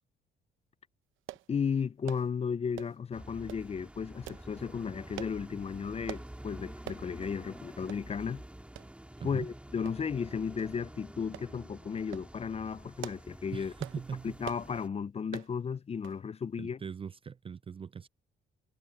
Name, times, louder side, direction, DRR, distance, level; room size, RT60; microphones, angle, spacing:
sound 1, 1.3-1.5 2.1-2.3 2.8-3.0 3.5-3.7 4.3-4.5 5.2-5.4 6.1-6.3 6.9-7.1 7.4-7.5 7.9-8.0 8.8-8.9 9.9-10.2 10.6-10.7 11.3-11.5 12.0-12.3 12.8-13.3 13.8-14.0 14.4-14.7 15.3-15.5 16.0-16.2 16.5-16.6, right 14 dB, 85° right, 0.9 m, -44 dB
voice 1, 1.5-8.4 9.2-13.7 14.2-16.8, left 6 dB, 30° left, 0.5 m, -34 dB
sound 2, 3.1-14.9, right 1 dB, 5° right, 2.2 m, -48 dB
voice 2, 9.2-9.5 13.5-14.4 16.6-18.1, right 6 dB, 30° right, 0.4 m, -40 dB
cardioid pair, 90°, 20 cm